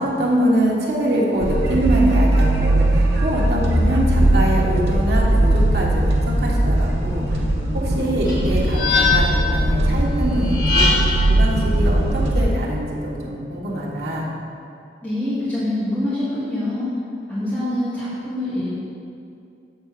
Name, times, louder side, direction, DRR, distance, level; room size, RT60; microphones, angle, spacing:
voice 1, 0.0-7.4 7.7-10.9 11.3-14.3, right 1 dB, 65° right, -4 dB, 1.4 m, -24 dB
sound 1, 1.4-12.5, right 1 dB, 85° right, 1.1 m, -19 dB
sound 2, 8.2-9.5 10.4-11.3, left 4 dB, 65° left, 1.9 m, -21 dB
voice 2, 15.0-16.9 17.3-18.8, left 1 dB, 10° left, -14 dB, 1.8 m, -25 dB
8.1 x 3.7 x 6.7 m, 2.5 s
head